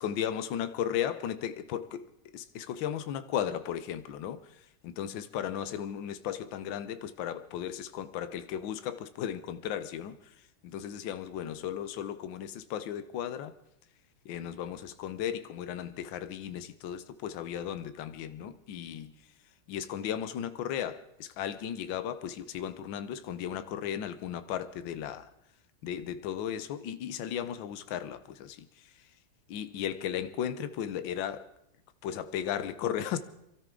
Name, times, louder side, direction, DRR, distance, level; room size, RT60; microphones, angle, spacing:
voice 1, 0.0-10.4 10.6-13.5 14.2-19.1 19.7-25.3 25.8-29.1 29.5-31.5 32.0-33.2, left 9 dB, 75° left, 1.6 m, -35 dB
27.5 x 13.0 x 3.8 m
omnidirectional pair, 2.2 m